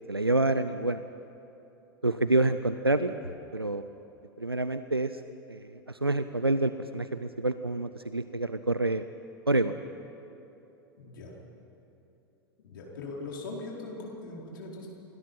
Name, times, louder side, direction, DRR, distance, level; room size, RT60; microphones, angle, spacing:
voice 1, 0.1-1.0 2.0-3.1 3.5-3.9 4.4-5.2 5.5-9.1 9.5-9.8, right 2 dB, 90° right, 11 dB, 0.6 m, -27 dB
voice 2, 11.0-11.3 12.7-14.9, left 2 dB, 60° left, -2 dB, 4.6 m, -40 dB
28.0 x 20.5 x 5.7 m, 2.9 s
figure-of-eight pair, 85°, 12 cm